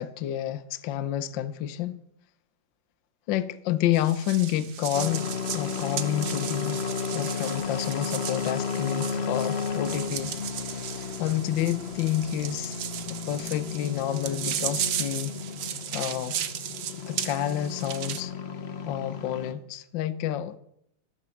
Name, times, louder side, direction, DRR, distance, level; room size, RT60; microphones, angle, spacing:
voice 1, 0.0-2.0 3.3-6.8 7.1-12.8 13.3-15.3 15.9-16.4 17.1-18.3 18.8-20.6, left 11 dB, 65° left, 1.4 m, -29 dB
sound 1, 3.9-18.2, right 10 dB, 85° right, 2.0 m, -36 dB
sound 2, 4.9-19.5, left 6 dB, 50° left, 0.8 m, -33 dB
14.0 x 13.5 x 7.0 m
omnidirectional pair, 2.4 m